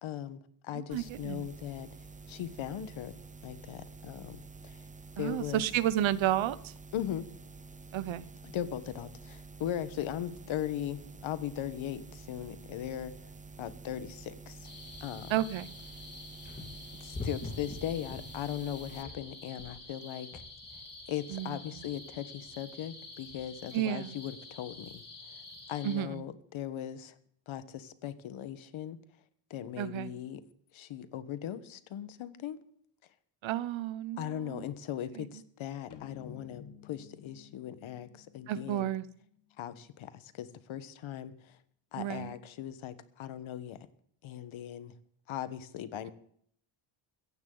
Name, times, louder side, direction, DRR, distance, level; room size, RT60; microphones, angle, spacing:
voice 1, 0.0-1.9 2.3-3.1 3.4-4.8 5.2-5.6 6.9-7.3 8.4-13.1 13.6-14.7 15.0-15.3 17.0-20.4 21.1-25.0 25.7-27.1 27.5-29.0 29.5-30.4 30.7-32.6 34.2-38.9 39.6-41.6 41.9-43.8 44.2-44.9 45.3-46.1, left 11 dB, 75° left, 13 dB, 1.4 m, -39 dB
voice 2, 0.7-1.5 5.2-6.7 7.9-8.3 15.3-15.7 21.3-21.8 23.7-24.2 25.8-26.2 29.8-30.2 33.4-34.7 35.2-35.4 38.5-39.1 42.0-42.3, right 12 dB, 70° right, 17 dB, 0.9 m, -32 dB
sound 1, 0.9-19.0, right 3 dB, 15° right, 0.6 m, -49 dB
sound 2, 14.6-26.0, left 3 dB, 20° left, 3.6 m, -46 dB
sound 3, 35.9-39.4, left 8 dB, 55° left, 1.7 m, -52 dB
16.5 x 15.0 x 4.0 m, 0.65 s
cardioid pair, 125°, 48 cm